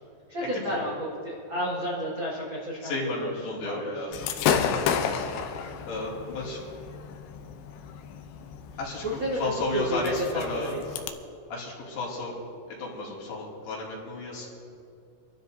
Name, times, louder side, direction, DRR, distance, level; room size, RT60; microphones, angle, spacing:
voice 1, 0.3-3.3 3.6-4.0 4.3-5.0 9.0-10.8, equal, 75° right, -6 dB, 1.1 m, -32 dB
voice 2, 2.8-5.0 5.9-6.6 8.8-10.8 11.5-12.4 12.7-14.5, left 2 dB, 65° left, -6 dB, 4.3 m, -33 dB
Gunshot gunfire / Fireworks, 4.1-11.1, left 7 dB, 80° left, 2.6 m, -32 dB
25.5 x 12.5 x 2.7 m, 2.6 s
omnidirectional pair, 5.4 m